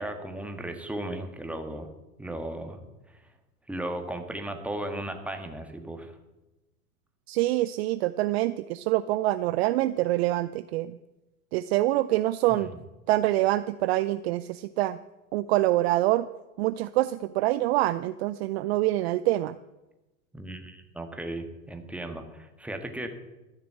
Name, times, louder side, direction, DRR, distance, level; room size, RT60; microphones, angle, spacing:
voice 1, 0.0-1.9 2.2-2.8 3.7-6.1 12.5-12.8 20.3-23.1, right 1 dB, 5° right, 5 dB, 1.6 m, -36 dB
voice 2, 7.3-11.0 11.5-12.7 13.1-15.0 15.3-16.3 16.6-19.6, right 16 dB, 45° right, 14 dB, 0.5 m, -25 dB
13.5 x 6.8 x 8.9 m, 1.0 s
hypercardioid pair, 95°, 45 cm